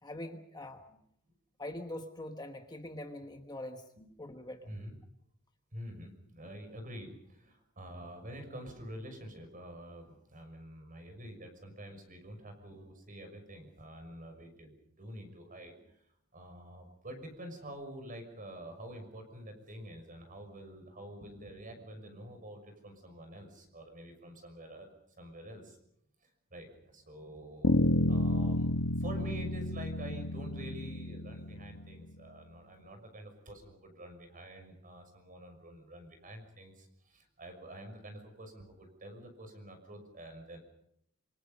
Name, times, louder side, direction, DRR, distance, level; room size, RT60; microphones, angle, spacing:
voice 1, 0.0-0.8 1.6-3.8 4.2-4.7, left 1 dB, 20° left, 5 dB, 1.3 m, -43 dB
voice 2, 4.6-5.0 5.7-16.0 16.3-24.9 25.2-25.8 26.2-40.6, right 1 dB, 40° right, 6 dB, 6.2 m, -47 dB
Bass guitar, 27.6-32.1, left 1 dB, 75° left, 1.6 m, -31 dB
26.5 x 26.0 x 5.4 m, 0.73 s
head